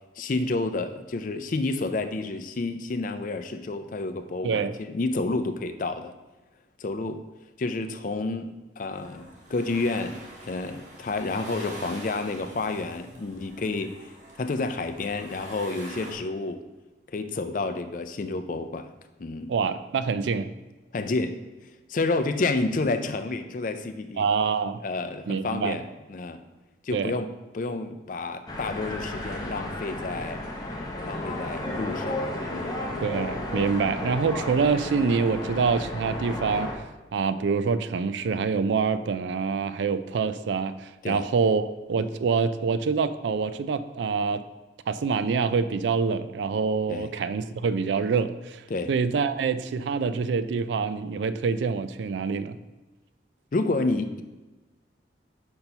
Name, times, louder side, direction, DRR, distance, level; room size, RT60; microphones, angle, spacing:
voice 1, 0.2-6.1 6.8-7.2 7.6-13.9 14.4-16.6 17.1-18.9 19.2-19.5 20.9-21.4 21.9-24.2 24.8-25.8 26.1-26.4 26.8-27.3 27.5-30.4 31.0-32.2 32.5-32.8 41.0-41.3 46.9-47.1 48.7-48.9 53.5-54.2, left 3 dB, 45° left, 9 dB, 0.4 m, -30 dB
voice 2, 4.4-4.8 19.5-20.5 24.2-24.8 25.3-25.8 26.9-27.1 33.0-36.7 37.1-44.4 44.9-52.6, right 5 dB, 70° right, 13 dB, 0.3 m, -26 dB
sound 1, 8.9-16.1, right 1 dB, 40° right, 1.3 m, -45 dB
sound 2, 28.5-36.7, left 1 dB, 20° left, 0.8 m, -33 dB
5.3 x 4.4 x 5.4 m, 1.1 s
head